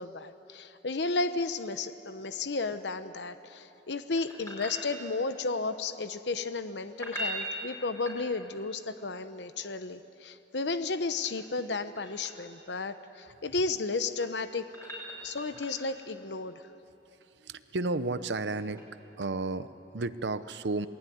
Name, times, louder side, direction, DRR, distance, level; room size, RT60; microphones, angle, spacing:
voice 1, 0.0-14.7 15.2-16.5, left 3 dB, 75° left, 11 dB, 0.9 m, -33 dB
sound 1, 4.2-5.4 6.9-8.7 10.8-12.5 13.9-16.0 18.8-18.9, right 1 dB, 15° left, 5.1 m, -41 dB
voice 2, 17.4-18.8 19.2-20.9, right 3 dB, 80° right, 13 dB, 0.8 m, -32 dB
27.5 x 19.0 x 9.3 m, 2.9 s
head